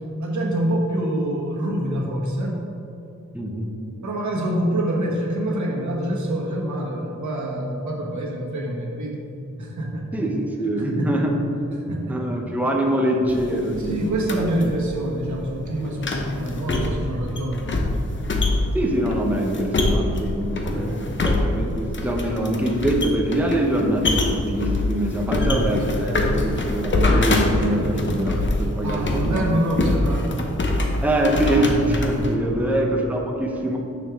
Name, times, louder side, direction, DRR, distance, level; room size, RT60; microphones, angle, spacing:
voice 1, 0.2-2.6 4.0-9.2 9.6-10.2 11.0-11.1 11.9-12.2 13.8-17.8 18.3-18.4 20.5-21.2 25.3-25.6 25.9-26.1 27.7-27.9 28.8-30.4 32.4-32.8, right 1 dB, 80° right, -2 dB, 1.4 m, -26 dB
voice 2, 3.3-3.7 10.1-11.4 11.9-14.5 18.7-29.4 31.0-33.8, right 1 dB, 5° right, 0 dB, 0.8 m, -24 dB
sound 1, 13.3-32.3, left 2 dB, 40° left, 0.8 m, -25 dB
9.3 x 6.5 x 3.6 m, 2.8 s
wide cardioid pair, 155°, 29 cm